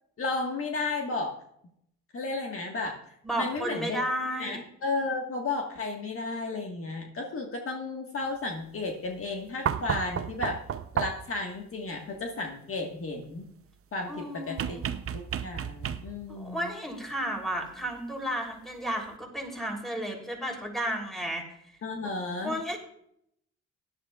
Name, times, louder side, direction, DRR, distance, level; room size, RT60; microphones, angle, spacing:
voice 1, 0.2-1.4 2.1-3.0 3.3-4.0 4.4-10.6 10.9-13.5 13.9-14.8 15.1-16.7 21.8-22.6, left 3 dB, 45° left, 1 dB, 1.6 m, -33 dB
voice 2, 3.2-4.6 14.1-14.9 16.3-21.4 22.4-22.8, equal, ahead, 1 dB, 3.3 m, -33 dB
sound 1, 9.7-11.4 14.6-16.3 17.9-18.0, right 8 dB, 50° right, 0.7 m, -32 dB
16.5 x 11.0 x 2.4 m, 0.72 s
cardioid pair, 90°, 30 cm